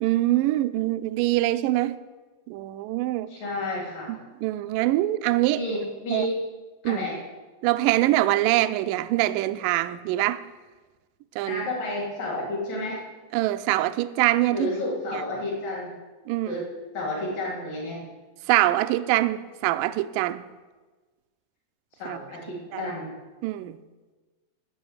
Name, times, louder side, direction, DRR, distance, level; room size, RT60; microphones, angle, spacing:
voice 1, 0.0-2.0 2.5-3.3 4.4-5.6 6.1-6.3 6.8-7.1 7.6-10.4 11.4-11.7 13.3-14.7 15.1-15.2 16.3-16.6 18.5-20.4 22.1-22.2 22.7-22.9 23.4-23.8, right 16 dB, 85° right, 1.9 m, -24 dB
voice 2, 3.3-4.1 5.6-6.4 6.8-7.2 11.5-13.0 14.5-15.9 16.4-16.7 16.9-18.0 22.0-23.1, left 1 dB, 50° left, 4.4 m, -31 dB
14.5 x 5.7 x 7.8 m
omnidirectional pair, 4.4 m